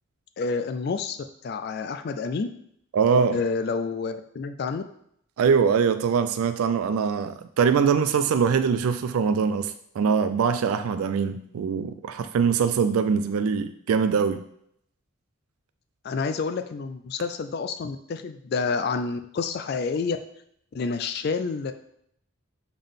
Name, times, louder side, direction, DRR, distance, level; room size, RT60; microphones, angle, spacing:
voice 1, 0.4-2.5 3.3-4.8 16.0-20.2 20.7-21.7, left 4 dB, 45° left, 8 dB, 0.3 m, -29 dB
voice 2, 2.9-3.4 5.4-14.4, right 6 dB, 85° right, 10 dB, 0.3 m, -23 dB
7.0 x 3.8 x 3.6 m, 0.71 s
head